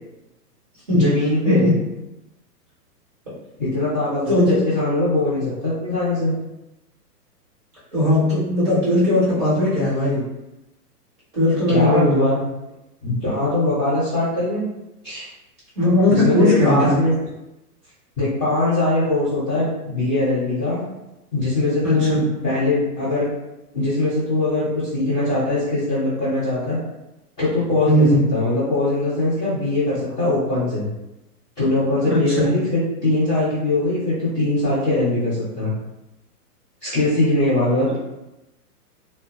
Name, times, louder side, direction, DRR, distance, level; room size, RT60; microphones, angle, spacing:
voice 1, 0.9-1.7 3.6-6.3 11.7-12.5 13.0-14.6 15.0-15.3 16.1-17.1 18.2-20.8 21.3-23.3 23.7-26.8 27.4-30.9 31.6-35.7 36.8-38.0, left 2 dB, 5° left, -22 dB, 0.5 m, -21 dB
voice 2, 4.3-4.6 7.9-10.2 11.3-12.2 15.8-16.9 21.8-22.2 27.9-28.2 32.0-32.5, left 1 dB, 30° right, -9 dB, 1.1 m, -18 dB
2.1 x 2.1 x 2.9 m, 0.95 s
hypercardioid pair, 175°, 47 cm